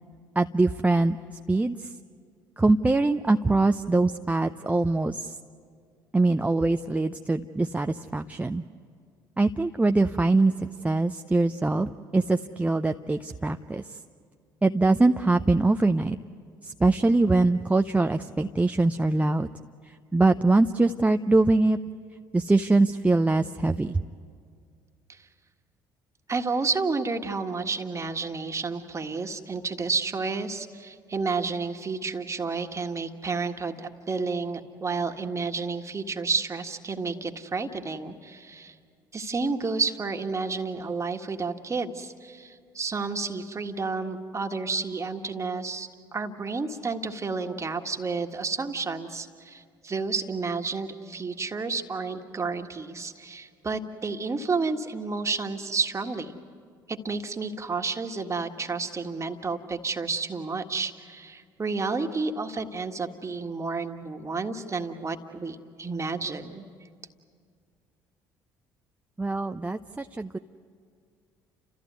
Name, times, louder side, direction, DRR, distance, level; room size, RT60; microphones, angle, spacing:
voice 1, 0.4-1.2 1.5-1.9 2.6-5.4 6.1-8.6 9.4-14.0 14.6-16.2 16.6-19.5 19.9-21.8 22.3-24.0 69.2-70.4, right 2 dB, 15° right, 6 dB, 0.6 m, -23 dB
voice 2, 26.3-38.7 39.1-56.4 56.9-66.6, right 4 dB, 30° right, 5 dB, 1.7 m, -31 dB
30.0 x 14.5 x 9.5 m, 2.1 s
hypercardioid pair, 60°, 10 cm